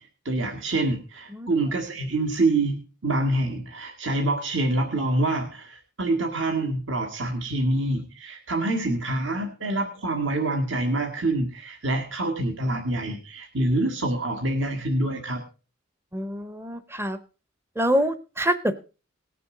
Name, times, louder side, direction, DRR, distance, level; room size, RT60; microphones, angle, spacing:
voice 1, 0.3-15.4, right 2 dB, 60° right, 3 dB, 1.8 m, -26 dB
voice 2, 16.1-17.2 17.8-18.8, equal, 10° right, 12 dB, 0.8 m, -25 dB
19.5 x 6.9 x 3.8 m, 0.33 s
head